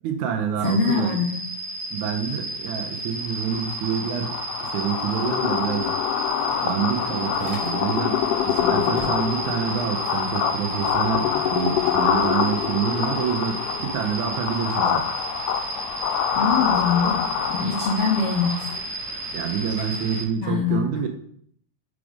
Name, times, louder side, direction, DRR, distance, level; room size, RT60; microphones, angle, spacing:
voice 1, 0.0-1.2 1.9-6.0 6.6-15.0 19.3-21.1, right 7 dB, 75° right, 4 dB, 2.0 m, -27 dB
voice 2, 0.6-1.4 16.4-17.2 17.5-18.6 20.4-21.1, left 5 dB, 65° left, -2 dB, 1.5 m, -23 dB
sound 1, 0.6-20.2, right 2 dB, 60° right, 0.8 m, -33 dB
sound 2, 3.5-18.8, left 9 dB, 85° left, 2.1 m, -26 dB
sound 3, 5.4-5.5 5.8-8.1 8.4-9.5, left 3 dB, 50° left, 1.1 m, -41 dB
5.1 x 4.8 x 4.9 m, 0.64 s
omnidirectional pair, 3.6 m